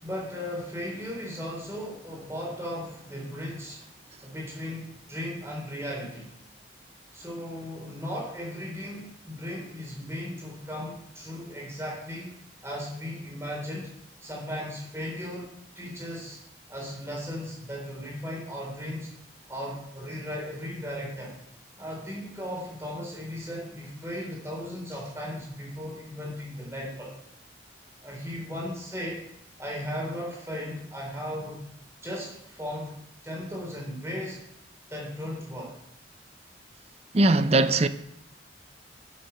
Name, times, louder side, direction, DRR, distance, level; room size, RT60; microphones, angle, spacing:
voice 1, 0.0-3.8 4.2-6.3 7.1-12.3 12.6-13.9 14.2-16.4 16.7-19.1 19.5-21.3 21.8-27.2 28.0-29.2 29.6-31.7 32.0-33.0 33.2-34.4 34.9-35.8, equal, 15° right, 3.8 m, -36 dB
voice 2, 37.1-37.9, right 2 dB, 35° right, 0.6 m, -20 dB
10.0 x 7.4 x 6.9 m
head